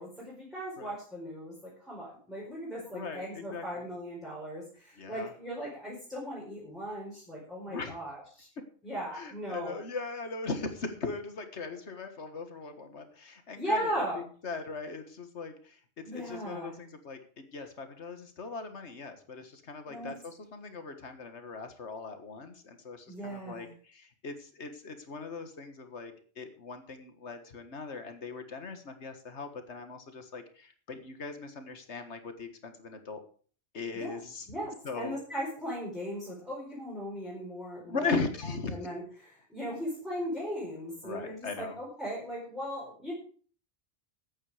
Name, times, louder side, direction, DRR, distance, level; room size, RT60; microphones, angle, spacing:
voice 1, 0.0-8.5 8.8-9.8 13.5-14.2 16.0-16.7 19.8-20.1 23.1-23.7 33.9-34.2 34.5-38.1 38.7-43.1, equal, ahead, -6 dB, 4.8 m, -38 dB
voice 2, 2.9-3.9 5.0-5.3 7.7-8.0 9.1-33.2 33.7-34.5 34.8-35.2 37.9-38.8 41.0-41.8, left 4 dB, 85° left, 7 dB, 1.9 m, -39 dB
14.5 x 8.9 x 5.0 m, 0.44 s
omnidirectional pair, 1.1 m